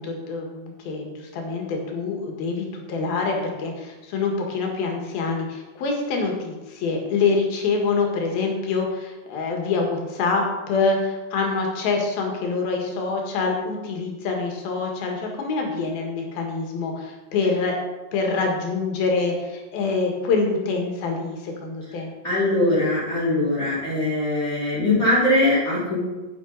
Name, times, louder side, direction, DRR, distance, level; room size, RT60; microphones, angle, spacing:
voice 1, 0.0-17.7 18.1-22.1, left 4 dB, 80° left, 1 dB, 3.5 m, -25 dB
voice 2, 22.2-26.0, left 1 dB, 20° left, -7 dB, 3.4 m, -21 dB
9.8 x 9.4 x 4.0 m, 1.2 s
omnidirectional pair, 4.3 m